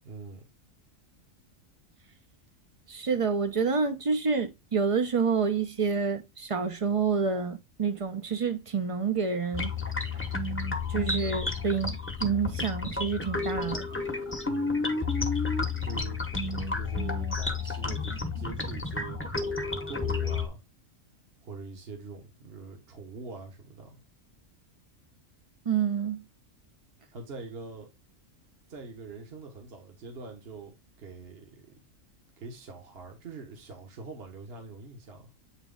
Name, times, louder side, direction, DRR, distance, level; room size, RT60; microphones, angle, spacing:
voice 1, 0.0-0.4 14.4-15.0 15.8-20.6 21.4-24.0 27.1-27.9 28.7-31.8 32.4-35.3, right 4 dB, 50° right, 1.5 m, -44 dB
voice 2, 2.9-9.7 10.9-11.9 12.2-13.9 25.7-26.2, right 5 dB, 30° right, 0.7 m, -28 dB
sound 1, 9.5-20.5, left 4 dB, 10° left, 0.9 m, -31 dB
8.2 x 3.1 x 3.7 m
omnidirectional pair, 1.4 m